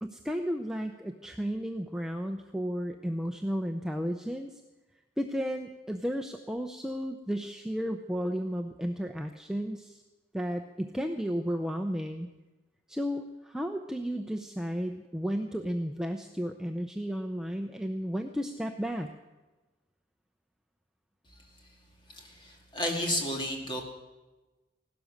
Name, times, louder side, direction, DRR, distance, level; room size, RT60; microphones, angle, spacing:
voice 1, 0.0-4.6 5.2-10.0 10.3-12.3 12.9-19.1, equal, 5° right, 4 dB, 0.6 m, -33 dB
voice 2, 22.1-23.8, left 1 dB, 25° left, 1 dB, 2.3 m, -32 dB
16.5 x 12.0 x 6.5 m, 1.2 s
head